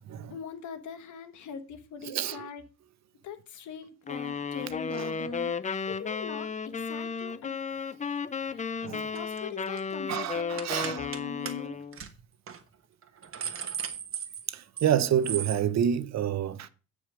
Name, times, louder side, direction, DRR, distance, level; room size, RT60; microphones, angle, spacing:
voice 1, 0.3-2.6 3.2-5.5 5.9-7.5 8.5-11.8, left 7 dB, 75° left, 1.4 m, -41 dB
voice 2, 2.1-2.5 4.9-5.1 8.8-9.1 10.1-11.1 14.5-16.7, right 9 dB, 60° right, 0.8 m, -28 dB
sound 1, 4.1-12.0, left 5 dB, 25° left, 0.5 m, -34 dB
sound 2, 9.1-9.4 9.7-9.9 10.6-11.2 11.5-11.6 11.9-12.1 12.5-12.6 13.0-14.9 15.2-15.6, right 7 dB, 45° right, 1.3 m, -36 dB
8.9 x 5.0 x 6.1 m
cardioid pair, 90°, 30 cm